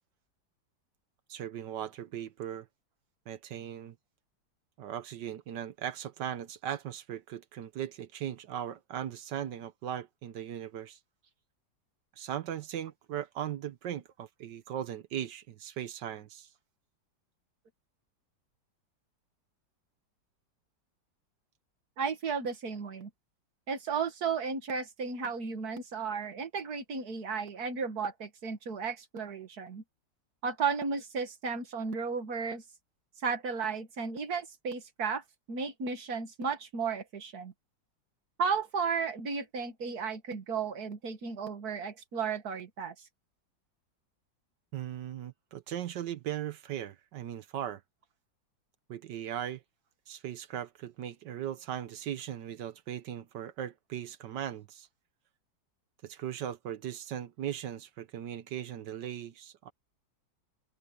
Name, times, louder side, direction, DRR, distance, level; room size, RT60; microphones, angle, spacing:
voice 1, 1.3-2.7 3.3-4.0 4.8-11.0 12.2-16.5 44.7-47.8 48.9-49.6 50.1-54.9 56.0-59.7, right 10 dB, 70° right, 1.4 m, -38 dB
voice 2, 22.0-23.1 23.7-29.8 30.4-32.6 33.2-37.5 38.4-42.9, right 5 dB, 55° right, 2.2 m, -34 dB
open air
omnidirectional pair, 2.0 m